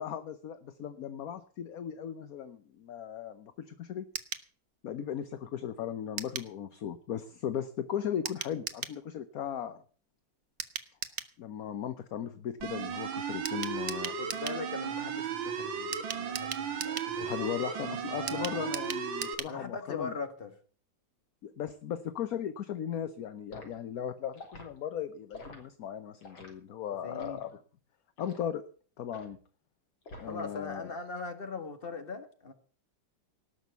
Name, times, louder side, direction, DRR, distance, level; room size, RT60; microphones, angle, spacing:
voice 1, 0.0-4.0 4.8-9.8 11.4-14.1 17.2-20.1 21.4-27.5 28.2-28.6 29.0-29.4 30.2-30.9, left 9 dB, 60° left, 11 dB, 1.1 m, -37 dB
sound 1, 4.1-4.5 6.2-6.5 8.3-9.0 10.6-11.3 13.5-14.6 15.9-17.1 18.3-19.6 19.9-20.0 20.2-20.3, right 7 dB, 50° right, 1.0 m, -38 dB
sound 2, 12.6-19.3, right 7 dB, 75° right, 2.1 m, -35 dB
voice 2, 14.2-18.9 19.5-20.5 27.0-27.4 30.2-32.5, left 4 dB, 30° left, 7 dB, 2.0 m, -41 dB
Liquid, 23.5-23.7 24.3-24.7 25.3-25.6 26.2-26.5 27.1-27.4 28.2-28.4 29.1-29.4 30.1-30.5 30.8-31.1, left 2 dB, 85° left, 4.1 m, -47 dB
18.5 x 6.3 x 8.0 m, 0.43 s
omnidirectional pair, 2.1 m